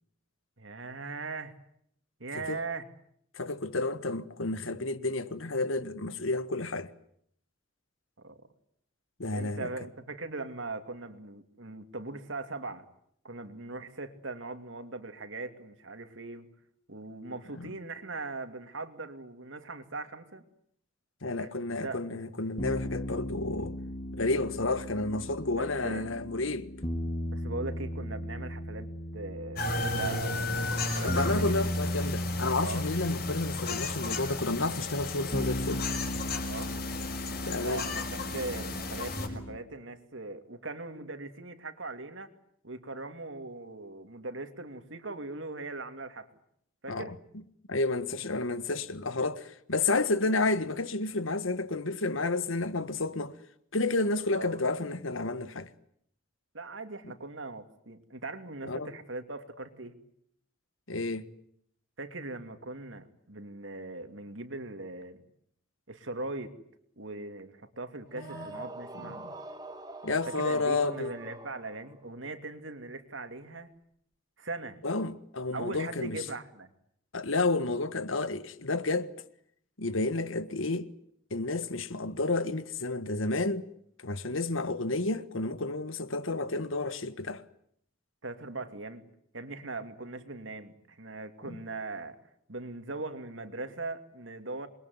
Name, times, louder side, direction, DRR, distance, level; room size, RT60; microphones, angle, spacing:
voice 1, 0.6-1.5 2.2-2.8 8.2-8.4 9.3-12.9 13.2-16.5 16.9-20.4 21.4-21.5 21.8-22.2 25.6-26.1 27.3-28.9 29.1-31.6 32.6-32.9 36.5-36.7 37.4-42.3 42.6-46.3 46.8-47.1 54.3-54.6 56.5-59.9 62.0-65.2 65.9-66.5 67.0-69.2 70.3-73.7 74.4-74.8 75.5-76.7 88.2-89.0 89.3-92.2 92.5-94.7, right 3 dB, 75° right, 2.7 m, -40 dB
voice 2, 3.3-6.9 9.2-9.7 17.5-17.7 21.2-23.8 24.1-26.7 31.0-35.8 37.5-37.9 46.9-47.1 47.7-53.3 53.7-55.7 58.6-58.9 60.9-61.3 68.1-68.5 69.0-69.3 70.0-71.1 74.8-76.2 77.1-79.1 79.8-80.9 81.3-83.7 84.0-87.4 91.5-91.6, left 2 dB, 85° left, 1.6 m, -31 dB
sound 1, 22.6-39.6, equal, 30° left, 2.9 m, -36 dB
sound 2, 29.6-39.3, left 3 dB, 50° left, 5.7 m, -35 dB
sound 3, 68.1-72.1, right 2 dB, 20° right, 2.0 m, -44 dB
27.5 x 22.5 x 9.6 m
head